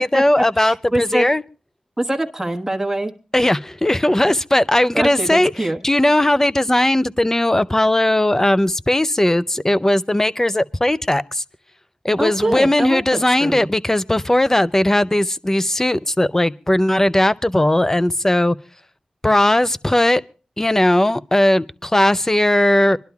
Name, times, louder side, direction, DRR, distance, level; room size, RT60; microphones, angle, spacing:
voice 1, 0.0-1.4 3.3-5.5 5.8-11.4 12.0-18.6 19.2-20.2 20.6-23.0, left 1 dB, 20° left, 0.6 m, -17 dB
voice 2, 0.6-1.2 2.0-3.1 4.9-5.8 12.2-13.7, right 1 dB, 15° right, 1.4 m, -23 dB
25.5 x 11.5 x 2.3 m
cardioid pair, 50°, 2 cm